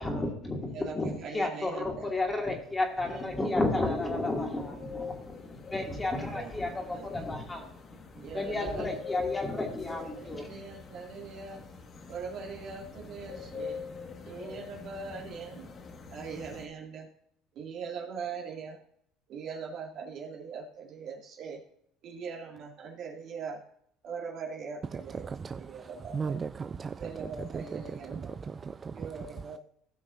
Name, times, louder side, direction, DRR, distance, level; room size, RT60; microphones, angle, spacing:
voice 1, 0.0-7.6 8.3-10.5, left 2 dB, 20° left, 2.5 m, -32 dB
voice 2, 0.7-2.1 3.0-3.5 5.5-5.6 6.3-6.5 6.9-7.3 8.1-8.9 10.2-11.6 12.1-13.8 14.3-15.7 16.1-17.1 17.5-18.8 19.3-21.6 22.0-23.6 24.0-26.4 27.0-28.3 28.9-29.6, right 5 dB, 55° right, 2.5 m, -41 dB
sound 1, 2.0-16.7, left 5 dB, 40° left, 1.8 m, -45 dB
voice 3, 24.9-29.6, right 5 dB, 30° right, 0.3 m, -38 dB
16.0 x 5.9 x 2.7 m
supercardioid pair, 80°, 0 cm